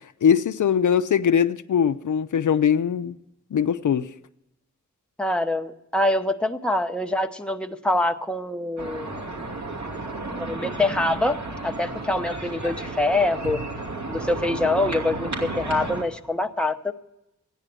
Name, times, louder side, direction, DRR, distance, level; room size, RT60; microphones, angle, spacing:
voice 1, 0.2-3.2 3.5-4.1, left 8 dB, 75° left, 0.6 m, -21 dB
voice 2, 5.2-9.2 10.4-11.4 11.6-13.6 14.1-16.9, left 2 dB, 5° left, 0.9 m, -25 dB
sound 1, 8.8-16.0, right 2 dB, 65° right, 2.7 m, -33 dB
14.5 x 10.0 x 7.6 m
wide cardioid pair, 80°, 31 cm